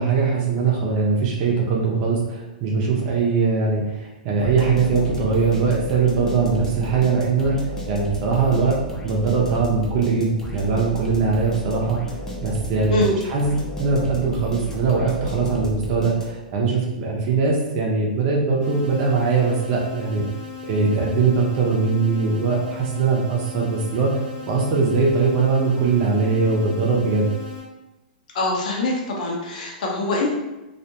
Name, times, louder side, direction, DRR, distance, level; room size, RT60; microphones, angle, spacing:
voice 1, 0.0-7.6 7.9-12.0 12.4-13.0 13.3-13.5 13.8-20.2 20.6-24.2 24.5-27.3, right 4 dB, 45° right, -2 dB, 0.6 m, -21 dB
sound 1, 4.4-16.6, left 1 dB, 10° left, 0.6 m, -33 dB
sound 2, 18.6-27.6, left 6 dB, 20° right, 1.0 m, -37 dB
voice 2, 28.3-30.3, left 2 dB, 65° left, -1 dB, 0.7 m, -23 dB
2.4 x 2.1 x 2.8 m, 1.0 s
hypercardioid pair, 115°, 5 cm